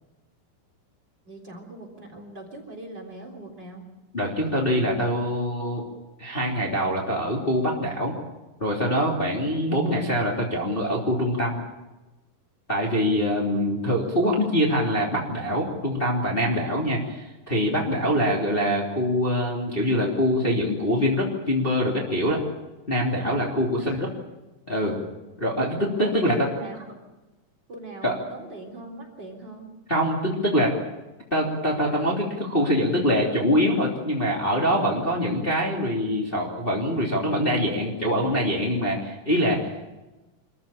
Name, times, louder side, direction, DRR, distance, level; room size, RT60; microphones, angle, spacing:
voice 1, 1.3-3.8 23.8-24.0 26.0-27.0 27.7-29.7, right 2 dB, 30° right, -1 dB, 4.1 m, -40 dB
voice 2, 4.1-5.8 6.2-8.1 8.6-11.6 12.7-22.4 22.9-24.1 24.7-25.0 25.4-26.5 28.0-28.1 29.9-30.7 31.3-39.7, equal, 15° left, -2 dB, 3.0 m, -24 dB
26.0 x 14.5 x 8.7 m, 1.1 s
omnidirectional pair, 4.0 m